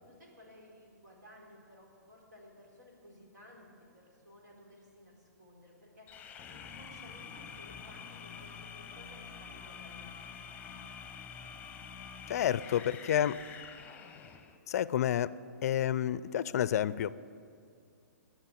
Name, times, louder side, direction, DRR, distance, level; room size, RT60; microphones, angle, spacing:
voice 1, 0.0-6.1 6.5-10.5, left 1 dB, 75° right, -2 dB, 4.1 m, -56 dB
sound 1, 6.1-14.6, left 6 dB, 15° left, 0.9 m, -47 dB
voice 2, 12.3-13.4 14.7-15.3 15.6-17.1, left 10 dB, 55° left, 18 dB, 0.4 m, -29 dB
12.5 x 6.4 x 9.7 m, 2.3 s
hypercardioid pair, 130°, 10 cm